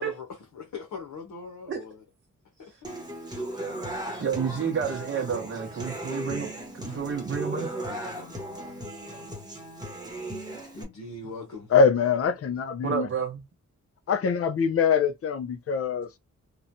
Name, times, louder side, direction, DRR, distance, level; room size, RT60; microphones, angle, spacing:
voice 1, 0.0-2.0 2.6-3.3 5.9-6.2 7.5-8.8 10.7-11.7, left 4 dB, 80° left, 0.8 m, -43 dB
Human voice / Acoustic guitar, 2.8-10.8, right 1 dB, 15° right, 0.9 m, -36 dB
voice 2, 4.2-7.7 12.8-13.4, right 7 dB, 45° right, 0.7 m, -30 dB
voice 3, 11.7-13.1 14.1-16.1, left 6 dB, 50° left, 0.5 m, -23 dB
3.0 x 2.1 x 2.6 m
wide cardioid pair, 145°, 30 cm